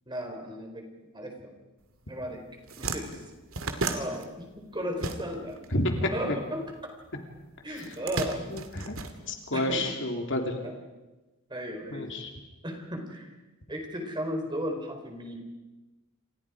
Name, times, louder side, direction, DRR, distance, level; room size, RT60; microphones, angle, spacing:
voice 1, 0.1-1.5 2.1-2.4 2.8-3.3 3.8-5.6 6.0-6.9 7.6-8.5 9.5-9.9 10.6-10.7 11.5-12.1 12.6-13.3 13.7-15.4, equal, 20° right, 3 dB, 4.2 m, -35 dB
sound 1, 2.1-2.2 2.5-5.6 5.9-7.1 7.7-9.8, right 3 dB, 70° right, 2.3 m, -35 dB
voice 2, 8.5-8.9 9.3-10.6 11.9-12.3, left 1 dB, 55° left, 3 dB, 3.2 m, -30 dB
29.0 x 27.0 x 5.0 m, 1.1 s
head